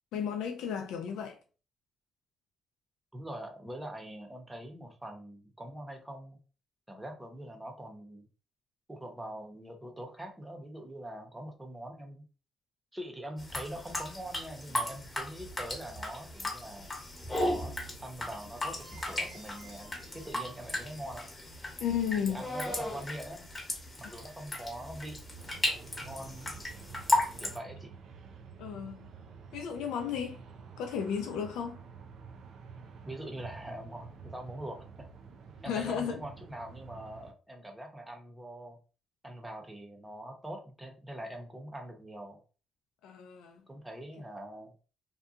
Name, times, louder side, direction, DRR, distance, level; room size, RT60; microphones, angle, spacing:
voice 1, 0.1-1.4 21.8-22.5 28.6-29.1 29.5-30.4 30.8-31.8 35.7-36.2 43.0-43.6, left 8 dB, 90° left, 0.4 m, -34 dB
voice 2, 3.1-6.4 6.9-8.3 8.9-12.2 12.9-16.9 17.4-17.7 18.0-21.3 22.2-23.4 24.0-25.2 26.0-26.5 27.4-27.9 33.1-34.8 35.6-38.8 39.2-42.4 43.7-44.7, right 1 dB, 10° right, 0.8 m, -43 dB
sound 1, 13.4-27.6, left 1 dB, 20° left, 0.9 m, -36 dB
sound 2, 18.8-21.1, right 3 dB, 55° right, 1.1 m, -56 dB
sound 3, 25.3-37.3, right 5 dB, 75° right, 0.4 m, -50 dB
2.7 x 2.3 x 2.4 m
cardioid pair, 90°, 0 cm